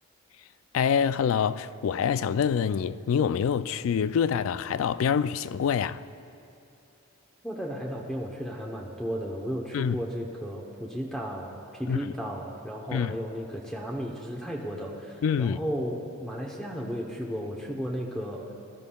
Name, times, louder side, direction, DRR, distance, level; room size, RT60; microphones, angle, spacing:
voice 1, 0.7-6.0 9.7-10.0 11.9-12.1 12.9-13.2 15.2-15.6, left 7 dB, 75° left, 0.3 m, -26 dB
voice 2, 7.4-18.5, equal, 5° left, 0.8 m, -34 dB
20.0 x 12.5 x 2.3 m
head